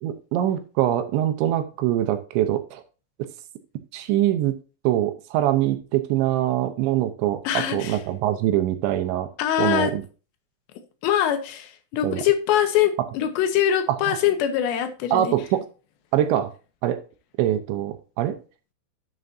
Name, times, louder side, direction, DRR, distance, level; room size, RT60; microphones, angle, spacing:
voice 1, 0.0-2.8 3.9-4.6 4.8-9.3 9.6-10.0 12.0-12.2 13.9-14.2 15.1-15.7 16.1-16.5 16.8-17.0 17.4-18.4, right 12 dB, 80° right, 8 dB, 3.1 m, -23 dB
voice 2, 7.4-8.0 9.4-9.9 11.0-15.3, left 10 dB, 75° left, 7 dB, 3.1 m, -23 dB
11.0 x 7.1 x 2.7 m, 0.34 s
omnidirectional pair, 5.3 m